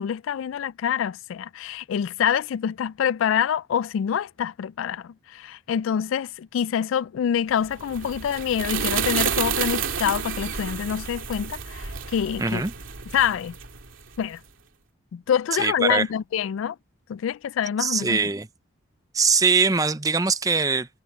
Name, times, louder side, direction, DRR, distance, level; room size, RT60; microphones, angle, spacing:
voice 1, 0.0-12.6 13.1-13.5 14.2-14.4 15.1-16.8 17.1-18.2, left 8 dB, 90° left, 0.3 m, -26 dB
sound 1, 7.6-14.3, right 7 dB, 85° right, 2.5 m, -30 dB
voice 2, 12.4-12.7 15.6-16.1 17.8-18.5 19.1-20.9, right 4 dB, 20° right, 0.6 m, -22 dB
head